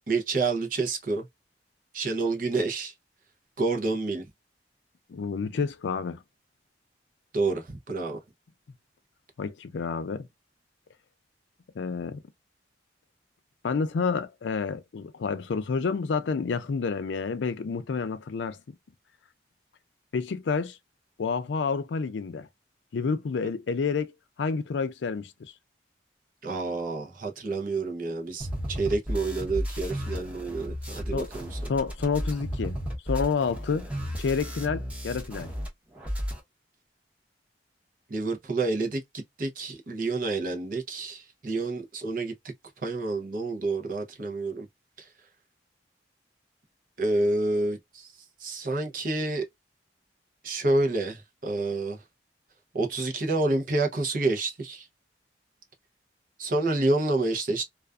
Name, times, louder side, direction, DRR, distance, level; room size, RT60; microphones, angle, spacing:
voice 1, 0.1-1.3 1.9-2.9 3.6-4.3 7.3-8.2 26.4-31.6 38.1-42.3 42.8-44.7 45.0-45.1 47.0-48.1 48.4-49.5 50.4-52.0 52.7-54.9 56.4-57.6, right 2 dB, 50° right, 0.6 m, -28 dB
voice 2, 5.1-6.2 9.4-10.3 11.8-12.2 13.6-18.6 20.1-20.8 21.2-22.5 22.9-24.1 24.4-25.5 31.1-31.3 31.7-32.8 33.1-33.9 34.2-35.5, left 5 dB, 80° left, 0.4 m, -29 dB
sound 1, 28.4-35.7 35.9-36.4, equal, 5° right, 0.8 m, -33 dB
2.4 x 2.3 x 2.3 m
head